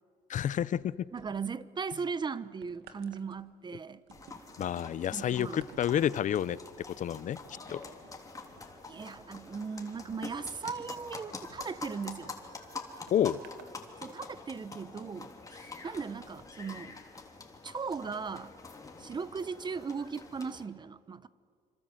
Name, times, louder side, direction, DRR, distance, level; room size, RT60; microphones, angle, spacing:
voice 1, 0.3-1.1 4.6-6.6 7.0-7.4 7.7-7.8 13.1-13.4, left 10 dB, 50° left, 0.7 m, -29 dB
sound 1, 0.6-1.6 2.0-12.3 13.1-13.8 14.5-14.6, right 8 dB, 85° right, 2.0 m, -58 dB
voice 2, 1.1-4.0 5.1-5.6 8.9-12.3 14.0-15.4 15.8-17.0 17.6-18.5 19.0-21.3, right 5 dB, 25° right, 0.9 m, -38 dB
sound 2, 4.1-20.7, left 3 dB, 20° left, 3.3 m, -46 dB
26.5 x 26.0 x 7.9 m
cardioid pair, 110°, 17 cm